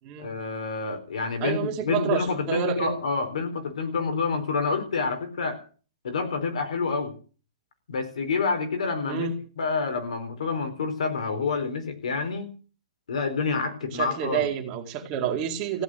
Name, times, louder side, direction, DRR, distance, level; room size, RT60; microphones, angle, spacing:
voice 1, 0.2-5.6 6.0-7.1 7.9-9.3 9.6-12.5 13.1-14.5, left 4 dB, 85° left, 6 dB, 4.6 m, -28 dB
voice 2, 1.4-2.9 9.1-9.3 13.9-15.8, right 8 dB, 25° right, 4 dB, 2.2 m, -29 dB
15.5 x 9.1 x 9.6 m, 0.40 s
hypercardioid pair, 175°, 3 cm